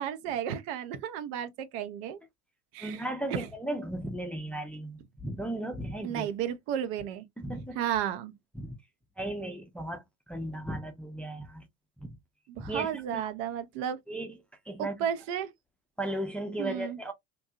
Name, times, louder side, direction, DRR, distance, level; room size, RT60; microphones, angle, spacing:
voice 1, 0.0-2.2 2.7-3.5 6.0-7.3 7.8-8.3 12.5-14.0 14.8-15.5 16.6-17.0, right 9 dB, 55° right, 0.6 m, -33 dB
voice 2, 2.8-6.3 7.4-7.8 8.5-8.8 9.2-11.7 12.0-12.2 12.6-13.3 14.1-14.4 14.7-14.9 16.0-17.1, right 1 dB, 5° left, 0.5 m, -36 dB
2.6 x 2.2 x 2.7 m
hypercardioid pair, 75°, 46 cm